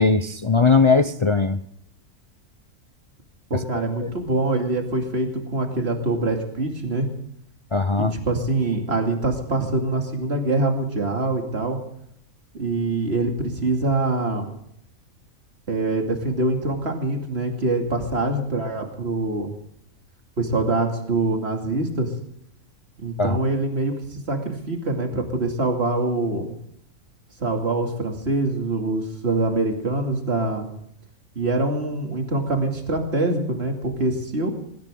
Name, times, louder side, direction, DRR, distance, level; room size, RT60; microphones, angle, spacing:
voice 1, 0.0-1.6 3.5-4.1 7.7-8.1 23.2-23.4, left 4 dB, 55° left, 11 dB, 0.3 m, -20 dB
voice 2, 3.5-7.1 8.0-11.8 12.5-14.5 15.7-19.5 20.4-22.1 23.0-26.5 27.4-30.7 31.3-34.5, right 2 dB, 50° right, 3 dB, 2.8 m, -24 dB
19.0 x 17.0 x 3.7 m, 0.71 s
omnidirectional pair, 1.4 m